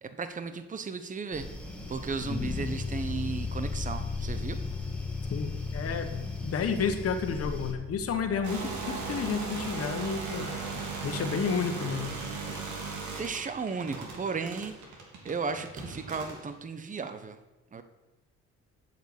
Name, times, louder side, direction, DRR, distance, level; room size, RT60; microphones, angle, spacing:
voice 1, 0.0-1.5 1.9-4.6 13.2-14.7 15.2-17.4 17.7-17.8, right 5 dB, 25° right, 9 dB, 1.0 m, -35 dB
sound 1, 1.3-7.7, left 1 dB, 5° left, 2.5 m, -40 dB
sound 2, 2.2-11.3, left 5 dB, 20° left, 0.3 m, -37 dB
voice 2, 5.3-10.5 11.0-12.2, left 6 dB, 50° left, 6 dB, 1.5 m, -31 dB
sound 3, 8.4-16.5, right 4 dB, 70° right, 3.0 m, -37 dB
8.0 x 6.9 x 8.1 m, 1.1 s
supercardioid pair, 75°, 30 cm